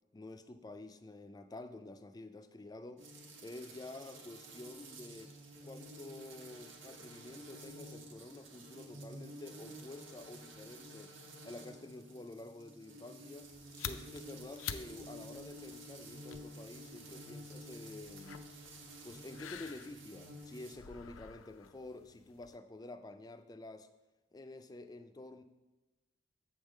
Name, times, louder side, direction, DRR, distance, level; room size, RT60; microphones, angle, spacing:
voice 1, 0.1-3.2 3.4-5.3 5.6-11.1 11.4-13.5 13.8-18.4 19.0-23.9 24.3-25.4, left 2 dB, 20° left, 9 dB, 0.3 m, -49 dB
sound 1, 3.0-20.7, right 1 dB, 70° right, 1.2 m, -51 dB
sound 2, 13.4-22.6, left 8 dB, 80° left, 0.5 m, -50 dB
7.9 x 3.5 x 6.3 m, 1.1 s
head